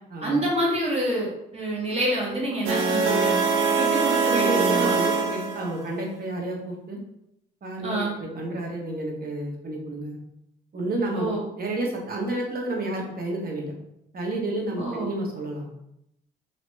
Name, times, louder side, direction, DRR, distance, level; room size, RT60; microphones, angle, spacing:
voice 1, 0.2-3.4 3.8-5.0 7.8-8.1 11.1-11.4 14.8-15.2, right 1 dB, 30° right, -4 dB, 1.5 m, -27 dB
sound 1, 2.7-5.9, right 4 dB, 80° right, 0.6 m, -23 dB
voice 2, 4.2-7.0 7.6-10.2 10.7-11.3 11.6-13.7 14.1-15.7, right 1 dB, 50° right, 0 dB, 1.0 m, -30 dB
3.0 x 2.9 x 3.2 m, 0.81 s
cardioid pair, 90°, 20 cm